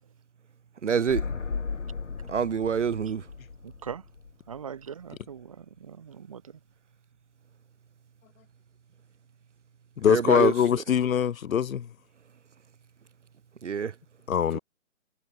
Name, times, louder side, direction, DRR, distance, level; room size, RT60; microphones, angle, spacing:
voice 1, 0.8-1.2 2.3-3.2 10.1-10.5 13.6-13.9 14.5-14.6, right 7 dB, 60° right, 0.8 m, -26 dB
sound 1, 1.1-4.8 5.1-5.2, left 5 dB, 65° left, 6.0 m, -36 dB
voice 2, 3.6-4.0 4.5-6.6, right 7 dB, 25° right, 2.4 m, -41 dB
voice 3, 10.0-11.9 14.3-14.6, left 8 dB, 85° left, 0.7 m, -23 dB
hypercardioid pair, 180°, 39 cm